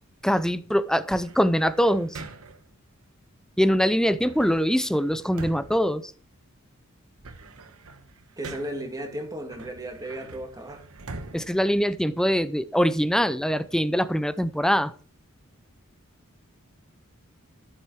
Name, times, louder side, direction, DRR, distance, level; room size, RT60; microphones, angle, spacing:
voice 1, 0.2-2.2 3.6-6.1 11.3-14.9, equal, 5° left, 0.5 m, -23 dB
sound 1, 1.1-2.7 4.2-6.6 7.0-8.9 9.5-12.5, right 3 dB, 85° right, 1.2 m, -44 dB
voice 2, 8.4-10.9, right 1 dB, 15° right, 2.2 m, -35 dB
13.0 x 7.6 x 4.7 m
head